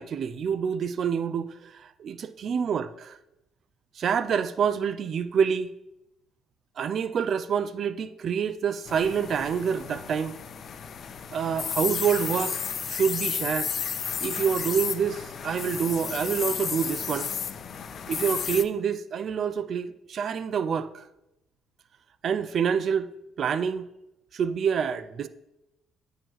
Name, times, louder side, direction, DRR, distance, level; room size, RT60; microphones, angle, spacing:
voice 1, 0.0-3.2 4.0-5.7 6.8-10.3 11.3-12.6 12.9-13.7 14.2-17.3 18.1-21.1 22.2-23.1 23.4-23.9 24.3-25.3, right 7 dB, 55° right, 0.3 m, -27 dB
sound 1, 8.9-18.6, left 7 dB, 50° left, 0.4 m, -33 dB
9.0 x 3.1 x 6.1 m
cardioid pair, 110°, 0 cm